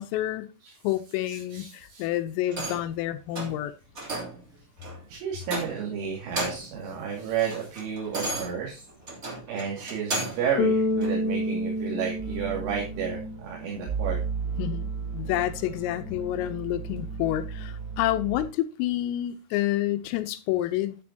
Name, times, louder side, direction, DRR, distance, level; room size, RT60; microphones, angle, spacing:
voice 1, 0.0-0.5 0.8-3.7 14.6-21.0, left 14 dB, 85° left, 3.4 m, -29 dB
voice 2, 1.2-2.0 5.1-8.8 9.5-14.2, right 7 dB, 75° right, 4.7 m, -32 dB
sound 1, 2.5-2.9 3.3-3.6 4.0-4.4 4.8-5.0 5.4-5.9 6.2-6.8 7.2-10.5 11.0-11.1, right 2 dB, 25° right, 1.8 m, -34 dB
Bass guitar, 10.6-13.7, left 1 dB, 45° left, 2.8 m, -28 dB
sound 2, 12.2-18.5, right 5 dB, 90° right, 4.2 m, -35 dB
10.5 x 9.7 x 2.8 m
omnidirectional pair, 5.9 m